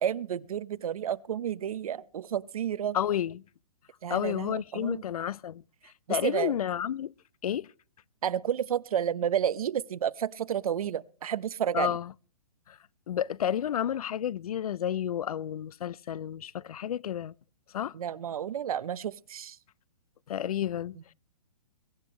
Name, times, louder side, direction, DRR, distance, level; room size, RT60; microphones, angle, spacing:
voice 1, 0.0-3.0 4.0-5.0 6.1-6.5 8.2-12.0 17.9-19.6, right 9 dB, 65° right, 0.8 m, -31 dB
voice 2, 2.9-3.4 4.1-7.1 7.4-7.7 11.7-12.1 12.7-12.8 13.1-17.3 17.7-17.9 20.3-21.1, left 10 dB, 70° left, 0.5 m, -31 dB
23.0 x 10.0 x 3.1 m
hypercardioid pair, 135°, 19 cm